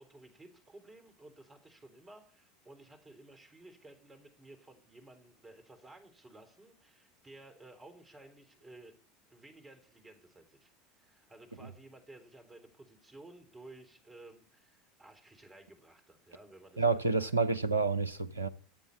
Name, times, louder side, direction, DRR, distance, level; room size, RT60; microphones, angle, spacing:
voice 1, 0.0-9.0 9.3-17.3, right 2 dB, 20° right, 3.7 m, -55 dB
voice 2, 16.8-18.5, right 4 dB, 90° right, 0.7 m, -29 dB
13.5 x 8.1 x 7.0 m
figure-of-eight pair, 75°, 0 cm